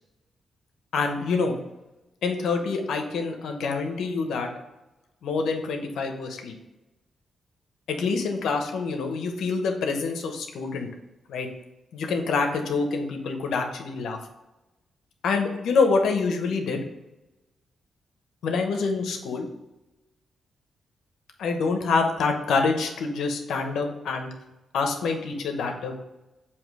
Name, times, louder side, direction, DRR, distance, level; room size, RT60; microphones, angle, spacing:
voice 1, 0.9-1.6 2.2-4.5 5.2-6.5 7.9-10.9 11.3-11.5 11.9-14.2 15.2-16.8 18.4-19.5 21.4-24.3 24.7-26.0, left 4 dB, 85° left, 4 dB, 0.9 m, -26 dB
7.1 x 2.9 x 4.8 m, 1.0 s
cardioid pair, 90°, 0 cm